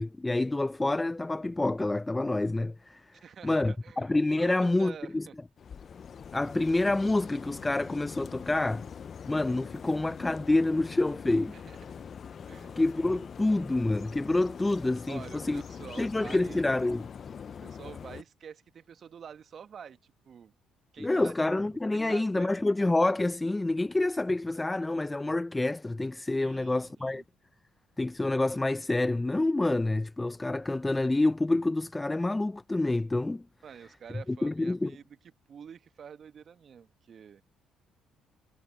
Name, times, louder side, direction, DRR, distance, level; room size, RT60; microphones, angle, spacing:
voice 1, 0.0-3.1 3.4-5.3 6.3-8.9 9.3-11.6 12.8-15.6 16.0-17.0 21.0-27.2 28.0-33.4 34.3-34.9, left 2 dB, 15° left, 0.7 m, -27 dB
voice 2, 3.2-5.4 11.5-11.8 12.5-12.8 15.1-16.7 17.6-20.5 20.9-22.6 26.4-27.2 33.6-35.0 35.5-37.4, right 7 dB, 55° right, 1.4 m, -47 dB
sound 1, 5.6-18.2, left 7 dB, 50° left, 0.7 m, -43 dB
hypercardioid pair, 55°, 0 cm